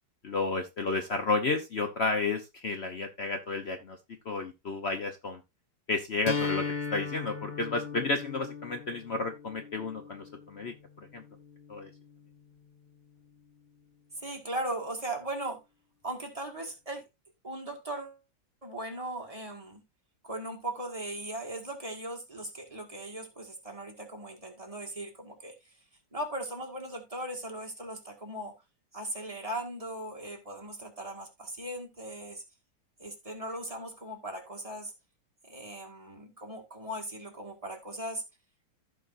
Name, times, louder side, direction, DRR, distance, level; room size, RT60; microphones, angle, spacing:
voice 1, 0.2-4.0 4.2-5.4 5.9-11.2 11.7-11.9, left 3 dB, 80° left, 0.5 m, -32 dB
sound 1, 6.3-12.2, left 5 dB, 35° left, 0.7 m, -38 dB
voice 2, 14.2-15.6 16.0-17.0 17.4-18.2 18.6-19.8 20.2-25.7 26.1-28.5 28.9-32.4 33.0-34.9 35.4-38.2, right 1 dB, 15° right, 1.7 m, -38 dB
15.0 x 5.4 x 2.6 m
omnidirectional pair, 2.4 m